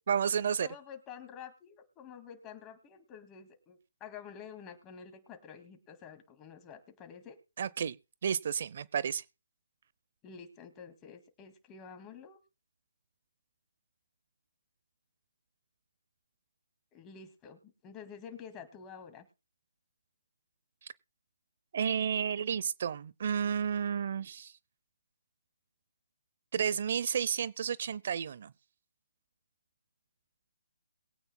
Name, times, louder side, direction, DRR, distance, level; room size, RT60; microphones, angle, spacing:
voice 1, 0.1-0.7 7.6-8.0 8.2-9.2 21.7-24.5 26.5-28.5, right 7 dB, 50° right, 0.5 m, -31 dB
voice 2, 0.6-7.4 10.2-12.4 16.9-19.3, left 7 dB, 20° left, 2.1 m, -49 dB
22.5 x 9.0 x 2.2 m
hypercardioid pair, 155°, 0 cm